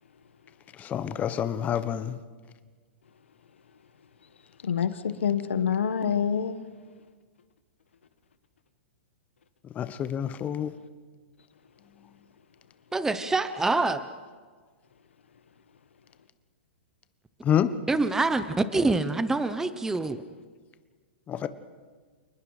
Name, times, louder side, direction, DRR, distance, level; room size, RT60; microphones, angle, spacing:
voice 1, 0.8-2.1 9.8-10.7 17.4-17.7 21.3-21.5, left 9 dB, 25° left, 13 dB, 1.2 m, -27 dB
voice 2, 4.6-6.6, left 7 dB, 90° left, 11 dB, 1.6 m, -26 dB
voice 3, 12.9-14.0 17.9-20.2, right 3 dB, 5° right, 12 dB, 0.9 m, -25 dB
29.0 x 20.0 x 5.1 m, 1.5 s
hypercardioid pair, 130°, 6 cm